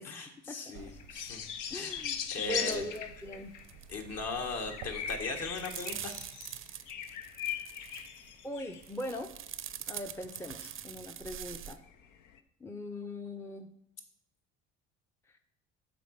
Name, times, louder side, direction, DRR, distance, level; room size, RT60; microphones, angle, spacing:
voice 1, 0.0-1.4 1.7-2.0 2.3-2.8 3.9-6.1, left 3 dB, 50° left, 4 dB, 1.6 m, -38 dB
sound 1, 0.7-5.8, right 7 dB, 85° right, 0.9 m, -52 dB
sound 2, 1.0-3.8 4.7-8.9 10.6-10.7 11.5-12.4, left 8 dB, 70° left, 0.8 m, -39 dB
voice 2, 1.7-3.5 7.5-7.6 8.4-9.3 9.9-11.8 12.6-13.7, left 1 dB, 10° left, 6 dB, 0.6 m, -40 dB
sound 3, 2.7-3.0 3.2-4.0 4.3-4.7 5.1-8.3 8.7-11.8, right 10 dB, 40° right, 0.6 m, -44 dB
6.8 x 4.0 x 6.5 m, 0.79 s
supercardioid pair, 80°, 32 cm